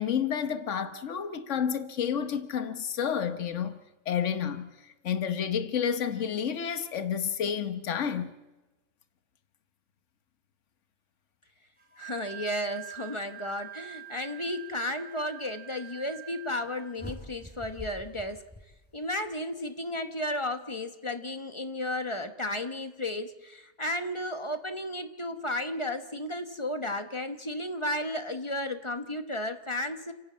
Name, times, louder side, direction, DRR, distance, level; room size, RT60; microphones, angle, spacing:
voice 1, 0.0-3.8 4.1-8.3, left 8 dB, 75° left, 1.4 m, -30 dB
Wind instrument woodwind instrument, 11.8-17.1, right 13 dB, 90° right, 4.0 m, -45 dB
voice 2, 12.0-18.4 18.9-30.1, left 1 dB, 25° left, 1.0 m, -33 dB
sound 1, 17.0-19.3, left 1 dB, 10° left, 4.2 m, -45 dB
30.0 x 11.0 x 8.5 m
omnidirectional pair, 1.3 m